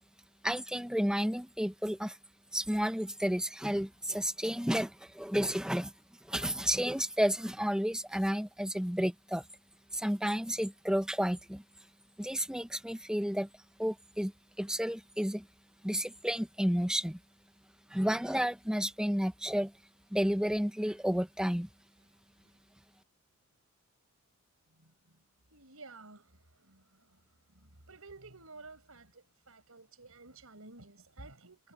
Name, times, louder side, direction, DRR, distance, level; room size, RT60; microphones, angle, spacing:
voice 1, 0.4-2.2 2.5-5.9 6.3-9.4 9.9-11.6 12.2-13.5 13.8-14.3 14.6-15.5 15.8-17.2 17.9-19.7 20.1-21.7, equal, 5° right, 1.1 m, -31 dB
voice 2, 25.5-27.2 27.5-31.7, right 3 dB, 75° right, 5.6 m, -53 dB
head